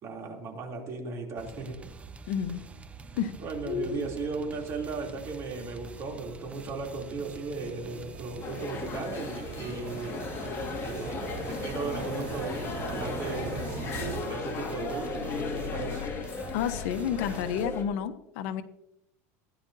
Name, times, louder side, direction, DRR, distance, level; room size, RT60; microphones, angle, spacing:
voice 1, 0.0-1.8 3.1-10.2 10.8-13.6 14.2-16.0, right 4 dB, 40° right, 1 dB, 3.2 m, -36 dB
Rock Background Music, 1.4-17.6, right 4 dB, 15° right, 0.7 m, -46 dB
voice 2, 2.3-2.6 3.2-3.4 3.7-4.1 16.5-18.6, left 8 dB, 70° left, 10 dB, 1.1 m, -30 dB
sound 1, 5.4-14.2, right 5 dB, 70° right, 4.1 m, -42 dB
sound 2, 8.4-17.8, left 4 dB, 35° left, 2.2 m, -36 dB
17.0 x 10.5 x 2.8 m, 0.80 s
supercardioid pair, 130°, 8 cm